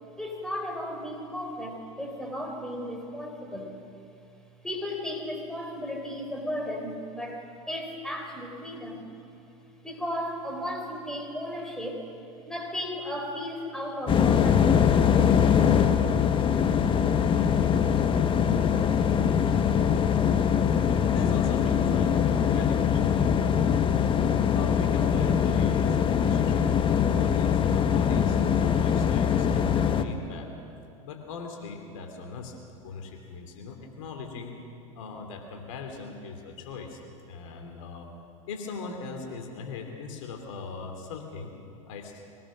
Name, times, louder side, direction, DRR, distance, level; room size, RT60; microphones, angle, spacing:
voice 1, 0.2-3.8 4.6-9.1 9.8-12.1 12.4-15.0, left 1 dB, 5° left, 2 dB, 4.2 m, -35 dB
sound 1, 14.1-30.0, left 7 dB, 30° left, 1.2 m, -23 dB
voice 2, 21.1-23.7 24.5-26.7 27.1-30.5 31.0-32.6 32.8-34.6 34.9-37.0 37.3-38.1 38.5-41.5 41.9-42.2, left 4 dB, 65° left, 3 dB, 2.9 m, -40 dB
23.5 x 18.5 x 6.2 m, 2.6 s
hypercardioid pair, 90°, 18 cm